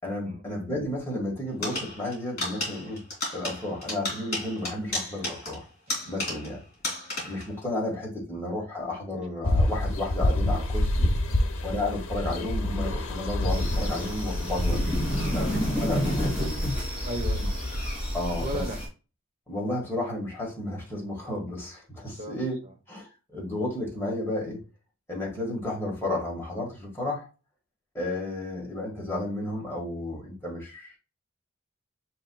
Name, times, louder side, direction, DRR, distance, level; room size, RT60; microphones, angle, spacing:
voice 1, 0.0-3.0 3.3-5.6 6.0-6.6 7.2-11.1 11.6-14.9 15.3-16.6 18.1-18.6 19.5-22.6 22.9-24.6 25.1-27.3 27.9-31.0, left 1 dB, 10° left, -3 dB, 1.5 m, -32 dB
sound 1, 1.6-6.6 6.8-7.5, left 2 dB, 35° left, 2.6 m, -33 dB
sound 2, 9.4-17.9, left 1 dB, 85° left, 0.7 m, -28 dB
sound 3, 13.5-18.9, equal, 5° right, 2.0 m, -30 dB
voice 2, 17.0-17.5 18.3-18.8 22.2-22.4 22.6-22.7, right 1 dB, 30° right, 1 dB, 0.9 m, -36 dB
6.8 x 2.8 x 2.2 m, 0.32 s
head